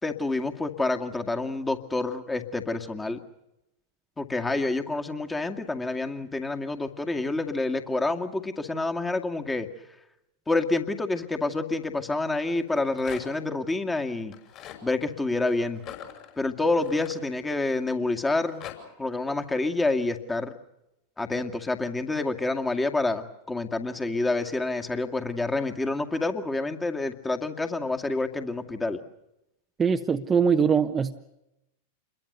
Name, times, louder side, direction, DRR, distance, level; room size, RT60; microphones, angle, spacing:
voice 1, 0.0-3.2 4.2-9.7 10.5-14.3 14.8-15.8 16.4-18.7 19.0-20.5 21.2-29.0, left 2 dB, 10° left, 6 dB, 2.2 m, -28 dB
Rattle, 12.6-13.5 14.2-14.8 15.7-17.7 18.2-18.8, left 10 dB, 40° left, 6.1 m, -43 dB
voice 2, 29.8-31.2, right 6 dB, 20° right, 5 dB, 1.1 m, -22 dB
28.0 x 22.0 x 6.8 m, 0.86 s
figure-of-eight pair, 90°, 0 cm